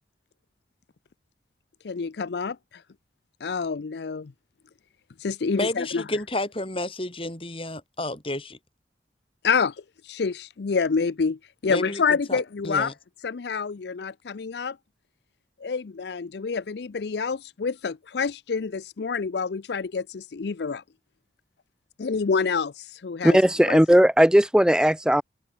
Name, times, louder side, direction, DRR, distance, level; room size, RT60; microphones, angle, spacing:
voice 1, 1.8-2.8 3.4-4.3 5.2-6.0 9.4-9.8 10.0-12.9 13.2-14.8 15.6-20.8 22.0-23.4 23.7-23.8, left 5 dB, 70° left, 0.5 m, -27 dB
voice 2, 5.6-8.6 11.7-12.0 12.3-12.9, left 1 dB, 30° left, 5.1 m, -31 dB
voice 3, 23.2-25.2, equal, 5° right, 0.4 m, -17 dB
head